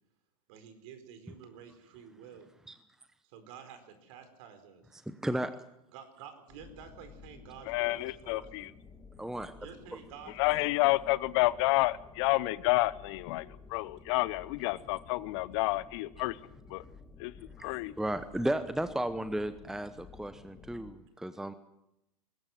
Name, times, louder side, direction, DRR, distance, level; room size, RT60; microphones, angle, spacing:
voice 1, 0.5-2.5 3.2-5.1 5.9-8.7 9.6-10.8, right 8 dB, 50° right, 8 dB, 4.5 m, -50 dB
voice 2, 5.1-5.5 9.2-9.5 17.6-21.5, right 1 dB, ahead, 11 dB, 0.9 m, -34 dB
sound 1, 6.5-20.9, left 5 dB, 15° left, 2.4 m, -53 dB
voice 3, 7.7-8.7 10.4-16.4 16.7-16.8 17.2-17.3 17.6-17.9, left 20 dB, 45° left, 19 dB, 0.8 m, -29 dB
20.5 x 17.5 x 7.8 m, 0.85 s
hypercardioid pair, 105°, 20 cm